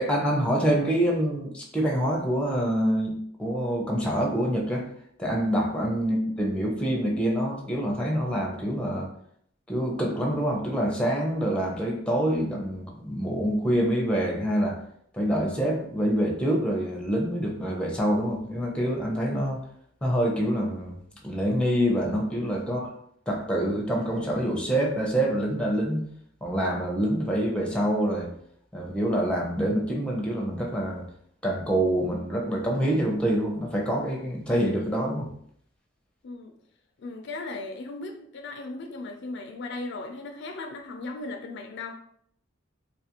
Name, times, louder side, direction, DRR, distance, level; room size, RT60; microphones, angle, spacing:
voice 1, 0.0-3.1 3.4-4.9 5.2-9.1 9.7-14.8 15.1-19.6 20.0-20.9 21.2-23.0 23.3-26.1 26.4-28.3 28.7-31.1 31.4-35.3, equal, 5° left, -1 dB, 0.6 m, -26 dB
voice 2, 37.0-42.0, left 2 dB, 60° left, 4 dB, 0.4 m, -37 dB
3.6 x 2.4 x 2.9 m, 0.66 s
head